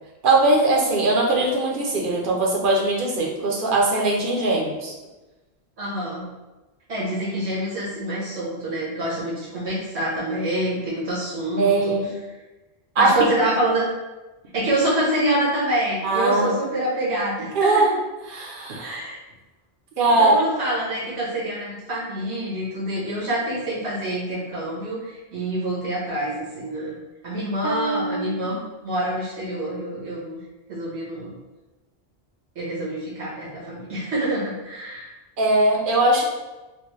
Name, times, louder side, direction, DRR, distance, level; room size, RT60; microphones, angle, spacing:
voice 1, 0.2-4.9 11.6-12.1 13.0-13.3 16.0-16.6 17.5-17.9 18.3-19.0 20.0-20.3 27.6-28.6 35.4-36.2, right 2 dB, 55° right, -1 dB, 0.8 m, -20 dB
voice 2, 5.8-6.3 6.9-11.9 13.0-13.9 14.5-17.8 18.8-19.2 20.2-27.0 27.2-30.4 30.7-31.3 32.5-35.1, right 1 dB, 90° right, -7 dB, 1.5 m, -26 dB
4.2 x 2.2 x 3.2 m, 1.1 s
omnidirectional pair, 1.1 m